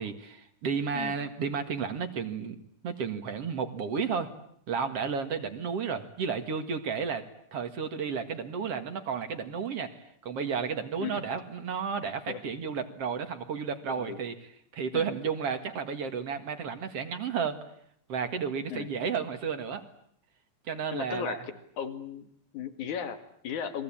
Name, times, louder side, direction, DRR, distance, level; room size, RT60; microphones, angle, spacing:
voice 1, 0.0-2.6 2.8-4.3 4.7-7.2 7.5-14.3 14.7-17.6 18.1-19.8 20.7-21.4, right 6 dB, 55° right, 8 dB, 2.7 m, -32 dB
voice 2, 20.9-21.5 21.8-23.8, left 8 dB, 80° left, 8 dB, 3.5 m, -36 dB
29.5 x 22.0 x 8.8 m, 0.69 s
omnidirectional pair, 3.4 m